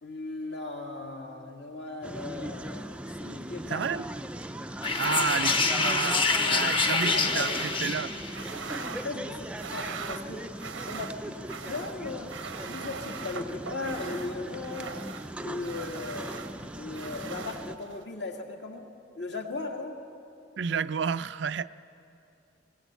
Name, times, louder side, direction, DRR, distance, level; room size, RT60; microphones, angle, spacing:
voice 1, 0.0-2.9 3.2-3.9 5.0-5.2 6.6-7.5 8.8-10.5 10.9-15.0 15.4-16.4 16.7-20.0, left 3 dB, 60° left, 1 dB, 2.2 m, -37 dB
sound 1, 2.0-17.8, right 1 dB, 5° right, 0.4 m, -39 dB
voice 2, 3.7-4.0 5.0-7.5 7.8-8.2 20.6-21.8, right 6 dB, 65° right, 13 dB, 0.4 m, -31 dB
sound 2, 4.8-8.4, left 4 dB, 25° left, 1.0 m, -26 dB
sound 3, 7.1-18.0, right 5 dB, 85° right, 0.9 m, -42 dB
20.5 x 18.5 x 8.2 m, 2.7 s
head